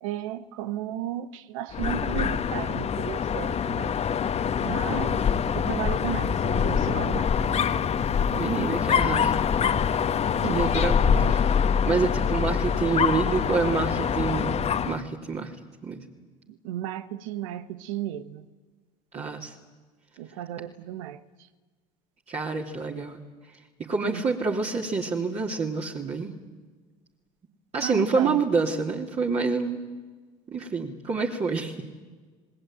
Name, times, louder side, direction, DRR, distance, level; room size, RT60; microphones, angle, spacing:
voice 1, 0.0-3.9 4.6-5.3 5.5-7.3 10.4-10.7 11.1-11.3 16.6-18.5 19.1-19.4 20.2-21.2 24.0-24.2 27.8-28.4, right 12 dB, 80° right, 1.2 m, -34 dB
Dog, 1.7-15.0, left 7 dB, 40° left, 1.3 m, -25 dB
voice 2, 8.3-9.4 10.4-11.4 11.8-15.5 15.8-16.0 19.1-19.5 22.3-23.2 23.8-26.3 27.7-29.8 30.5-31.8, right 4 dB, 40° right, 3.2 m, -27 dB
28.0 x 20.0 x 9.1 m
hypercardioid pair, 75°, 17 cm